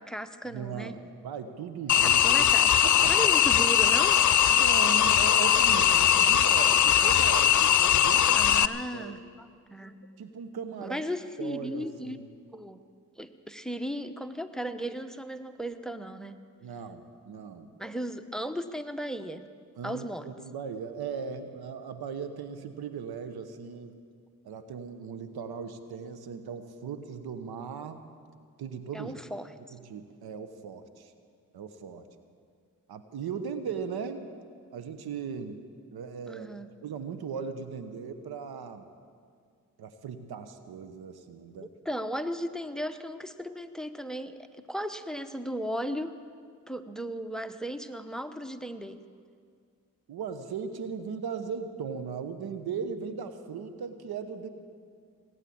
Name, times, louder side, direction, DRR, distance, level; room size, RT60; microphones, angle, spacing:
voice 1, 0.0-1.0 1.9-2.7 3.1-4.2 8.3-10.0 10.8-12.2 12.5-12.8 13.2-16.4 17.8-19.4 19.8-20.3 28.9-29.5 36.3-36.7 41.8-44.4 44.7-46.1 46.7-49.0, equal, ahead, 10 dB, 1.0 m, -36 dB
voice 2, 0.5-2.2 2.6-3.2 4.5-8.5 8.9-9.2 10.2-11.0 11.4-12.2 16.6-17.7 19.8-24.0 24.4-28.1 28.6-29.1 29.7-31.1 31.5-32.0 32.9-34.3 34.7-35.6 35.9-36.5 36.8-38.9 39.8-41.7 50.1-54.5, right 6 dB, 80° right, 10 dB, 1.0 m, -38 dB
sound 1, 1.9-8.7, left 9 dB, 50° left, 0.6 m, -21 dB
19.0 x 9.0 x 8.6 m, 2.1 s
supercardioid pair, 40°, 37 cm